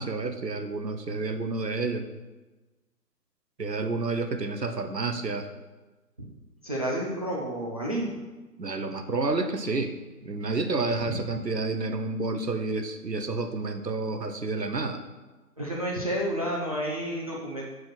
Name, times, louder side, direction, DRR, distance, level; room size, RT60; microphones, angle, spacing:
voice 1, 0.0-2.1 3.6-5.5 8.6-9.9 10.2-15.0, right 3 dB, 85° right, 7 dB, 1.0 m, -30 dB
voice 2, 6.6-8.1 11.0-11.2 15.6-17.7, right 1 dB, 25° right, -4 dB, 0.6 m, -30 dB
5.8 x 5.2 x 6.0 m, 1.2 s
figure-of-eight pair, 140°, 49 cm